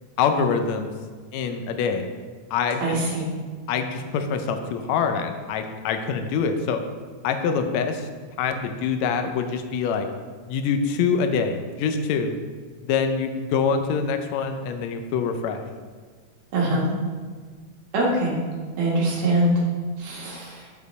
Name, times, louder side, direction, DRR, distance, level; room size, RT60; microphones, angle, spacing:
voice 1, 0.2-0.9 1.3-2.0 2.5-3.1 3.7-6.8 7.2-8.1 8.4-10.1 10.5-12.3 12.8-15.6, left 6 dB, 75° left, 7 dB, 1.8 m, -25 dB
voice 2, 2.8-3.2 16.5-16.9 17.9-18.3 18.8-19.5 20.0-20.6, right 1 dB, 70° right, -3 dB, 2.6 m, -23 dB
7.2 x 6.7 x 4.1 m, 1.5 s
omnidirectional pair, 3.4 m